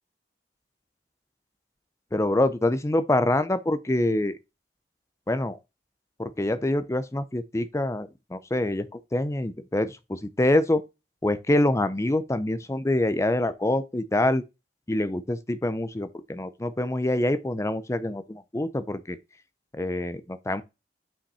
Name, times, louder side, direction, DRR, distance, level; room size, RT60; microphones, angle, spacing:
voice 1, 2.1-4.3 5.3-5.6 6.2-10.8 11.2-14.4 14.9-19.2 19.7-20.6, left 1 dB, 15° left, 0.5 m, -25 dB
5.7 x 5.5 x 4.1 m
head